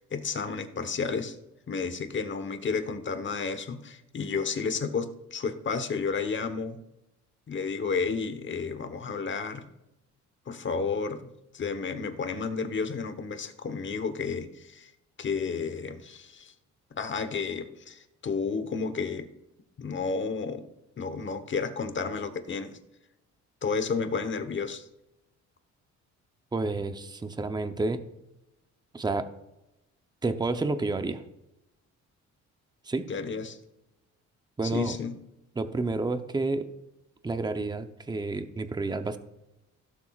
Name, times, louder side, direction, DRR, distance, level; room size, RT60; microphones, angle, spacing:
voice 1, 0.0-1.4 1.7-6.8 7.5-9.6 10.5-11.2 11.5-14.9 15.2-16.5 17.0-19.3 19.8-20.6 21.0-22.8 23.6-24.9 33.1-33.6 34.6-35.2, left 5 dB, 40° left, 10 dB, 1.1 m, -31 dB
voice 2, 26.5-28.0 28.9-29.3 30.2-31.2 32.9-33.1 34.6-35.0 35.6-36.7 37.2-39.2, right 3 dB, 15° right, 9 dB, 0.7 m, -30 dB
16.5 x 6.9 x 2.4 m, 0.91 s
cardioid pair, 90°, 30 cm